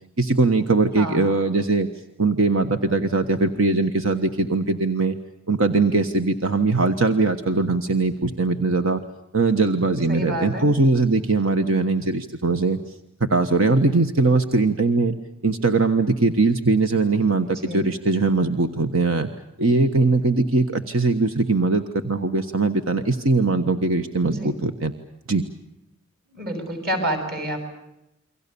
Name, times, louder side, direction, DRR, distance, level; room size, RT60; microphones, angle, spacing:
voice 1, 0.2-1.9 2.2-5.2 5.5-9.0 9.3-12.8 13.2-15.2 15.4-19.3 19.6-24.9 25.3-25.4, right 3 dB, 75° right, 8 dB, 1.4 m, -21 dB
voice 2, 0.9-1.4 10.1-10.7 17.6-17.8 24.2-24.5 26.3-27.6, right 1 dB, 50° right, 7 dB, 7.6 m, -28 dB
29.0 x 24.0 x 7.0 m, 0.88 s
head